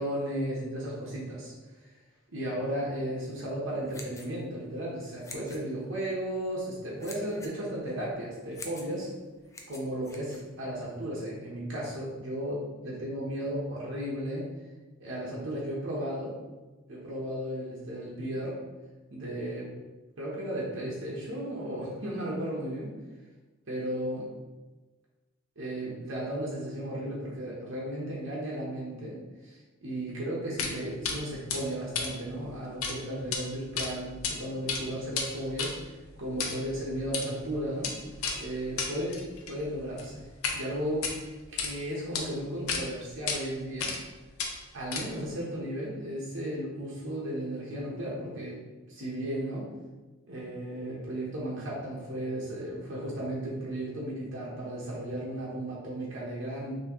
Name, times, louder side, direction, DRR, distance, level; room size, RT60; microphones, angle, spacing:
voice 1, 0.0-1.5 2.3-9.1 9.7-14.5 15.0-16.4 16.9-18.6 19.1-19.7 20.2-22.9 23.7-24.3 25.6-35.8 36.2-37.9 38.4-40.2 40.5-41.1 41.5-44.0 44.7-48.6 48.9-49.7 50.3-56.8, right 1 dB, 60° right, -5 dB, 1.0 m, -35 dB
sound 1, 3.7-11.0, left 3 dB, 15° left, 0.4 m, -49 dB
sound 2, 30.6-30.7 31.0-31.2 31.5-32.9 33.2-33.4 33.8-34.3 34.6-40.6 40.9-41.7 42.1-42.2 42.7-42.8 43.3-43.4 43.8-44.1 44.4-45.3, left 5 dB, 80° left, 0.7 m, -33 dB
5.9 x 3.0 x 3.0 m, 1.2 s
head